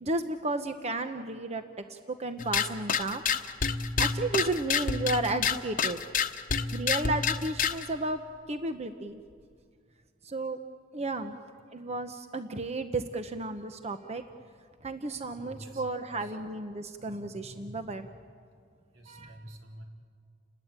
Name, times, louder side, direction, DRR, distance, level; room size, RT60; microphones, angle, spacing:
voice 1, 0.0-1.6 1.9-3.2 3.5-3.7 4.0-6.0 6.7-8.2 8.5-9.2 10.2-10.6 10.9-11.4 11.7-14.2 14.8-18.1 19.1-19.3, right 2 dB, 35° right, 8 dB, 0.9 m, -33 dB
sound 1, 2.4-7.9, left 6 dB, 45° left, 1.1 m, -29 dB
voice 2, 15.4-16.4 18.9-19.8, right 1 dB, 85° right, 1 dB, 4.1 m, -48 dB
30.0 x 21.0 x 8.9 m, 2.1 s
head